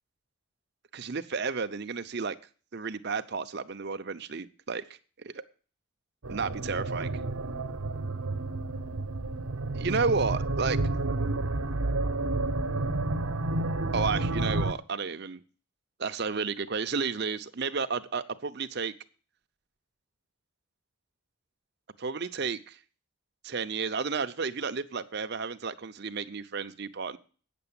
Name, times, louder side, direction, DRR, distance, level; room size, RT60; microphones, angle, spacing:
voice 1, 0.9-2.4 2.7-4.8 5.2-5.3 6.3-7.1 9.8-10.8 13.9-15.4 16.0-18.9 22.0-22.8 23.4-27.2, right 5 dB, 50° right, 9 dB, 0.7 m, -32 dB
sound 1, 6.2-14.7, right 2 dB, 85° right, 1.0 m, -30 dB
9.1 x 6.9 x 8.8 m, 0.40 s
head